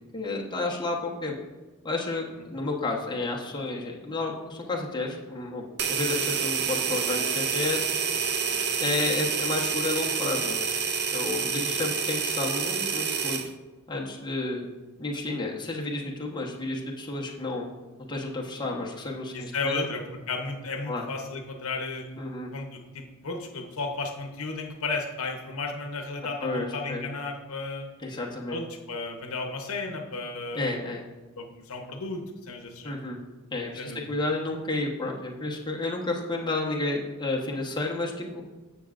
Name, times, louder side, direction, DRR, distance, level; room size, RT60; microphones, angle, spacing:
voice 1, 0.1-1.4 1.8-5.6 5.9-7.8 8.8-10.6 11.1-13.4 13.9-14.6 15.0-17.7 18.1-19.9 20.9-21.0 22.2-22.5 26.4-27.0 28.0-28.6 30.5-31.0 32.8-33.2 33.5-38.4, left 2 dB, 20° left, -3 dB, 1.1 m, -31 dB
sound 1, 5.8-13.5, right 6 dB, 45° right, 0.5 m, -28 dB
voice 2, 8.5-8.8 11.5-11.7 19.3-22.1 22.5-27.9 28.5-30.8 31.4-33.1 33.8-34.2, left 3 dB, 70° left, 3 dB, 0.9 m, -34 dB
15.0 x 6.0 x 2.5 m, 1.2 s
head